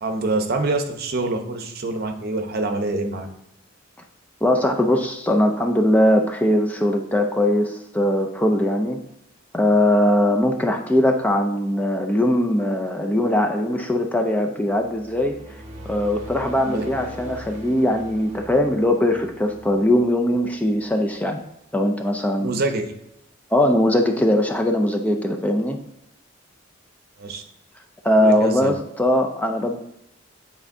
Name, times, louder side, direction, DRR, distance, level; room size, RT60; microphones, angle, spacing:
voice 1, 0.0-3.3 16.6-16.8 22.3-22.9 27.2-27.4 28.2-28.7, right 2 dB, 55° right, 5 dB, 0.8 m, -25 dB
voice 2, 4.4-9.0 9.5-21.4 21.7-22.6 23.5-25.8 28.0-29.8, left 1 dB, 10° left, 3 dB, 0.4 m, -20 dB
sound 1, 14.7-21.2, equal, 35° right, 1.1 m, -41 dB
8.5 x 4.3 x 2.6 m, 0.84 s
head